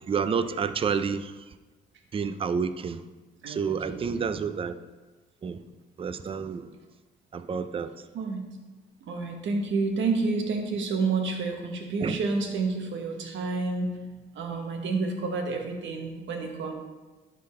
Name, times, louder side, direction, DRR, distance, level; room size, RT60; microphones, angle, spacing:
voice 1, 0.0-1.6 2.1-3.0 3.5-4.8 5.4-5.6 6.0-6.7 7.3-8.1 12.0-12.2, right 6 dB, 30° right, 0.4 m, -29 dB
voice 2, 3.4-4.3 8.1-8.5 9.1-14.0 14.3-16.7, right 4 dB, 70° right, 1.2 m, -29 dB
11.0 x 4.2 x 3.2 m
cardioid pair, 90°, 20 cm